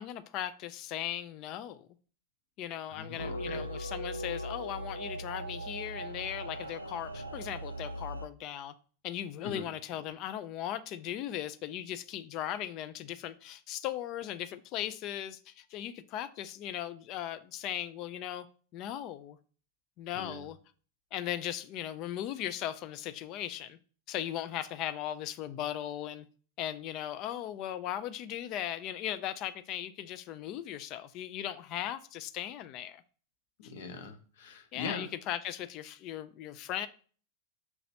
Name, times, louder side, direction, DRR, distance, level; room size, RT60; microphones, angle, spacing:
voice 1, 0.0-1.9 2.6-8.7 9.0-18.5 18.7-19.4 20.0-20.6 21.1-23.8 24.1-26.3 26.6-33.0 33.6-33.7 34.7-36.9, left 11 dB, 40° left, 0.3 m, -38 dB
voice 2, 2.9-3.6 9.4-9.6 20.1-20.4 33.6-35.1, left 4 dB, 55° left, 0.8 m, -41 dB
sound 1, 3.2-8.3, right 1 dB, 90° right, 0.3 m, -39 dB
5.7 x 2.9 x 2.8 m
figure-of-eight pair, 90°, 0 cm